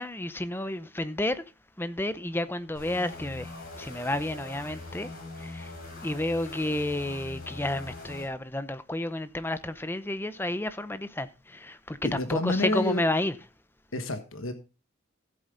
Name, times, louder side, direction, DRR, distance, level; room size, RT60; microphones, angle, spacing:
voice 1, 0.0-1.5 1.8-5.7 6.0-13.4, left 1 dB, 10° left, 0.6 m, -31 dB
sound 1, 2.8-8.3, left 2 dB, 45° left, 5.2 m, -42 dB
voice 2, 12.0-13.0 13.9-14.5, left 2 dB, 70° left, 1.3 m, -29 dB
15.0 x 8.3 x 3.8 m
head